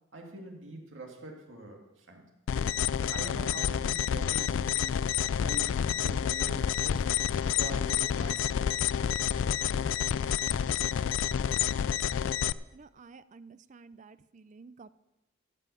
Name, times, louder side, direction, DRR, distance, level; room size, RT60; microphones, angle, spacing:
voice 1, 0.1-2.2 3.1-4.9 5.4-7.1 7.5-8.5, right 1 dB, 65° right, 1 dB, 2.3 m, -44 dB
sound 1, 2.5-12.5, left 9 dB, 65° left, 0.3 m, -29 dB
voice 2, 12.7-14.9, right 4 dB, 35° right, 15 dB, 0.4 m, -52 dB
14.5 x 5.5 x 8.3 m, 0.97 s
head